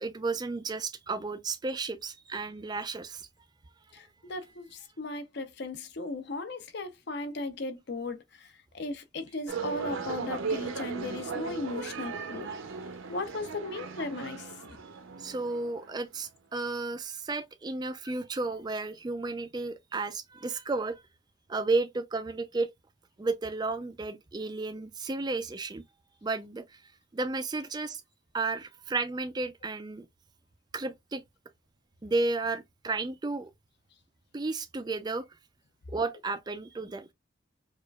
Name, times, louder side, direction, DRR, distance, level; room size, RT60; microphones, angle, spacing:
voice 1, 0.0-3.3 15.2-21.0 21.5-22.7 23.2-25.8 26.2-26.6 27.1-28.0 28.3-30.1 30.7-31.2 32.0-33.5 34.3-35.3 35.9-37.1, right 3 dB, 20° right, 0.3 m, -33 dB
voice 2, 3.9-12.5 13.1-14.5, left 2 dB, 50° left, 0.6 m, -37 dB
sound 1, 9.5-16.0, right 5 dB, 70° right, 0.6 m, -37 dB
4.8 x 2.3 x 2.2 m
head